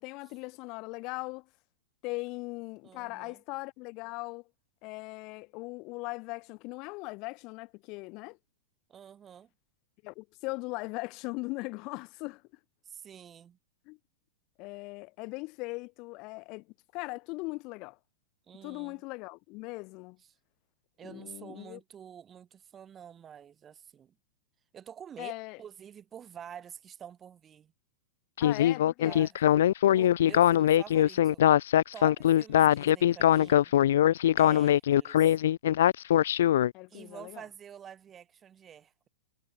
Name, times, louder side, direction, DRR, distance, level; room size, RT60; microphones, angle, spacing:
voice 1, 0.0-1.4 2.0-4.4 4.8-8.4 10.0-12.4 13.9-14.0 14.6-16.6 16.9-18.0 18.6-20.2 21.0-21.8 25.2-25.6 28.4-29.3 36.7-37.4, left 26 dB, 40° left, 3.9 m, -39 dB
voice 2, 2.8-3.4 8.9-9.5 12.8-13.6 18.5-19.0 20.2-20.4 21.0-24.2 24.7-25.3 25.6-27.7 29.0-29.4 29.9-31.4 31.9-33.8 34.4-35.4 36.9-39.1, right 8 dB, 20° right, 4.3 m, -48 dB
Speech synthesizer, 28.4-36.7, left 11 dB, 75° left, 0.4 m, -22 dB
supercardioid pair, 145°, 0 cm